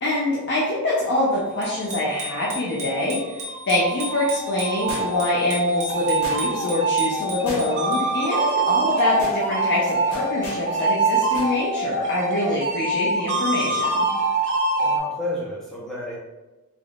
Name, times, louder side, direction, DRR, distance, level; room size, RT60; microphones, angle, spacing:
voice 1, 0.0-14.1, left 1 dB, 50° left, -6 dB, 0.6 m, -25 dB
Bicycle bell, 1.6-8.3, left 1 dB, 35° right, 0.8 m, -36 dB
sound 1, 3.2-15.0, right 3 dB, 55° right, 0.6 m, -24 dB
sound 2, 4.9-5.4 6.2-6.7 7.5-8.0 8.3-8.5 8.9-9.4 10.1-10.7 11.3-11.5 11.9-12.0, left 1 dB, 80° left, 1.1 m, -36 dB
voice 2, 14.8-16.2, left 1 dB, ahead, -6 dB, 0.8 m, -31 dB
3.4 x 3.1 x 2.4 m, 1.1 s
head